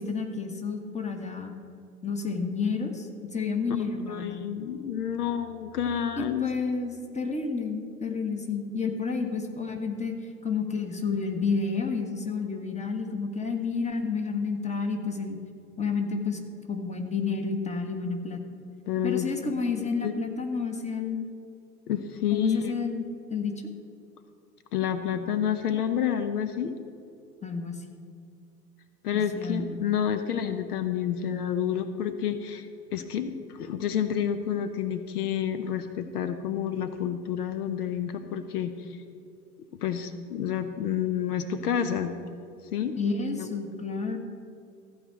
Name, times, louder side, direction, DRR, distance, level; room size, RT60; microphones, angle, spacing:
voice 1, 0.0-1.5 2.0-4.4 6.2-10.1 10.4-15.4 15.8-16.4 16.7-18.4 19.0-21.2 22.3-23.0 23.3-23.5 27.4-27.8 29.1-29.7 43.0-44.2, left 4 dB, 15° left, 4 dB, 1.4 m, -30 dB
voice 2, 4.1-6.4 18.9-19.5 19.8-20.1 21.9-22.8 24.7-26.8 29.0-32.7 32.9-39.0 39.8-42.1 42.7-43.0 43.4-43.5, left 9 dB, 75° left, 10 dB, 0.8 m, -29 dB
14.5 x 4.9 x 7.8 m, 2.4 s
figure-of-eight pair, 75°, 46 cm